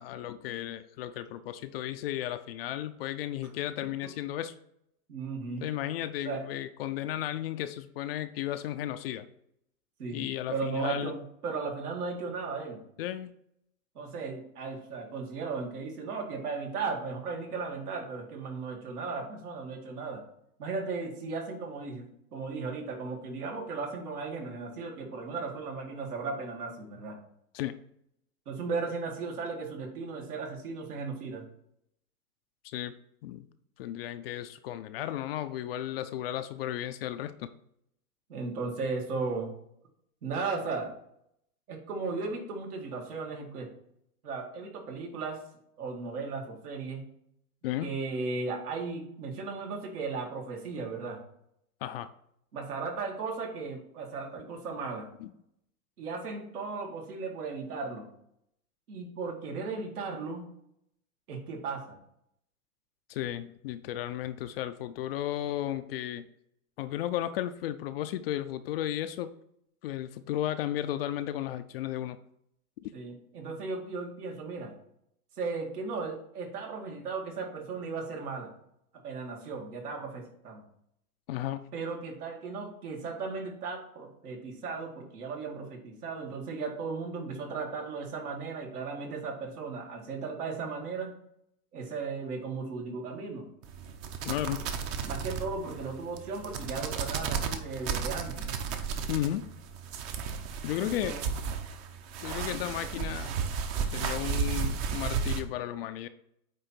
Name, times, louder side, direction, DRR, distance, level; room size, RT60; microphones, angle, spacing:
voice 1, 0.0-4.5 5.6-9.3 10.1-11.1 13.0-13.3 27.5-27.8 32.6-32.9 33.2-33.5 33.8-37.5 47.6-47.9 51.8-52.1 55.2-55.3 63.1-66.3 66.8-69.3 69.8-72.2 72.8-72.9 81.3-81.6 94.3-94.6 99.1-99.5 100.6-101.2 102.2-103.3 103.8-106.1, left 12 dB, 45° left, 11 dB, 0.4 m, -34 dB
voice 2, 5.1-5.7 6.2-6.4 10.0-12.8 13.9-20.2 20.6-27.2 28.5-31.4 38.3-39.5 40.2-40.9 41.7-43.7 44.2-45.4 45.8-47.0 47.8-51.2 52.5-55.1 56.0-58.1 58.9-60.5 61.3-62.0 72.9-74.7 75.4-78.5 79.0-80.6 81.7-91.2 91.7-93.5 95.0-98.5 100.8-101.3, right 4 dB, 75° right, 0 dB, 2.3 m, -36 dB
sound 1, 93.6-105.4, right 6 dB, 40° right, 0.9 m, -34 dB
8.9 x 3.0 x 4.4 m, 0.74 s
hypercardioid pair, 130°, 45 cm